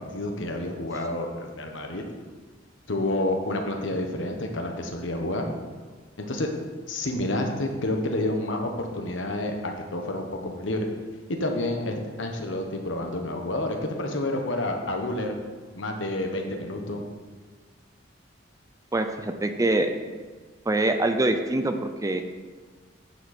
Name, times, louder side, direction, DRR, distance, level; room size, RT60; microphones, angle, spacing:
voice 1, 0.1-2.0 2.9-5.5 6.2-6.5 6.9-10.9 11.4-15.3 15.7-17.0, left 1 dB, 70° left, 3 dB, 1.3 m, -29 dB
voice 2, 18.9-19.9 20.7-22.2, right 2 dB, 15° right, 7 dB, 0.5 m, -24 dB
9.2 x 7.4 x 4.3 m, 1.4 s
head